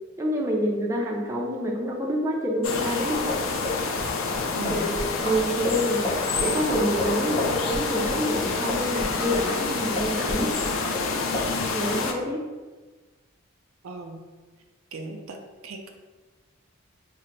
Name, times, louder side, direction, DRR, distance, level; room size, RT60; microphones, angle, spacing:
voice 1, 0.2-3.3 4.7-5.0 5.2-10.8 11.7-12.4, equal, 15° right, -2 dB, 0.4 m, -27 dB
sound 1, 2.6-12.1, left 4 dB, 65° left, 0.4 m, -28 dB
sound 2, 3.3-9.7 10.0-11.1 11.3-11.5, left 1 dB, 20° left, 0.7 m, -31 dB
voice 2, 4.6-4.9 13.8-14.2 14.9-15.9, right 2 dB, 75° right, 4 dB, 0.4 m, -37 dB
3.7 x 2.0 x 4.4 m, 1.3 s
head